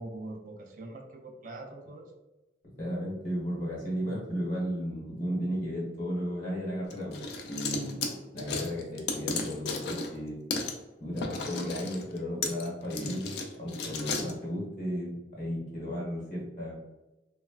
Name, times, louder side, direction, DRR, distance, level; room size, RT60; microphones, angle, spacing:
voice 1, 0.0-2.1, right 2 dB, 45° right, 2 dB, 0.3 m, -43 dB
voice 2, 2.8-7.2 7.5-10.4 11.0-16.7, equal, 45° left, -4 dB, 0.9 m, -34 dB
sound 1, 6.9-10.2 10.5-10.7 11.2-14.3, left 4 dB, 65° left, 0.4 m, -34 dB
2.9 x 2.1 x 2.3 m, 1.0 s
head